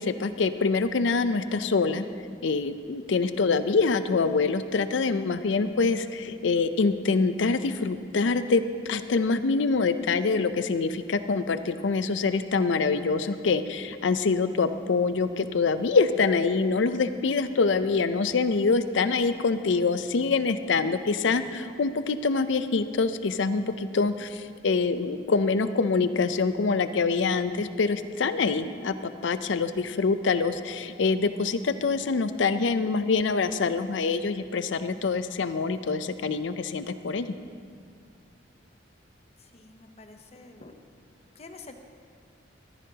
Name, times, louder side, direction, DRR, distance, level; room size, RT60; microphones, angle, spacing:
voice 1, 0.0-2.0 2.4-28.9 29.2-37.3, left 4 dB, 75° left, 11 dB, 0.5 m, -25 dB
voice 2, 39.4-40.8 41.3-41.7, left 3 dB, 35° left, 6 dB, 0.8 m, -47 dB
14.5 x 14.0 x 2.8 m, 2.3 s
head